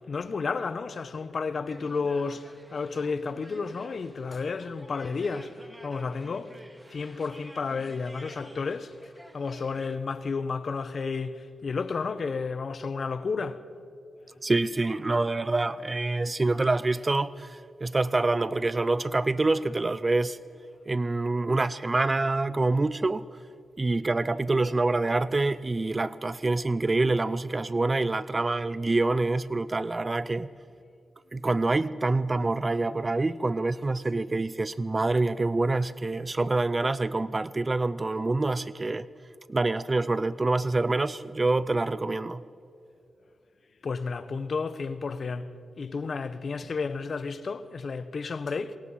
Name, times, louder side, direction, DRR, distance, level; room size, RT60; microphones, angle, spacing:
voice 1, 0.1-5.5 5.8-6.6 6.9-13.6 43.8-48.8, left 4 dB, 60° left, 1.1 m, -32 dB
sound 1, 1.7-10.0, right 1 dB, 15° right, 3.1 m, -51 dB
voice 2, 14.4-20.4 20.9-23.2 23.8-30.5 31.3-39.1 39.5-42.4, right 2 dB, 35° right, 0.6 m, -26 dB
27.5 x 21.0 x 5.8 m
cardioid pair, 50°, 0 cm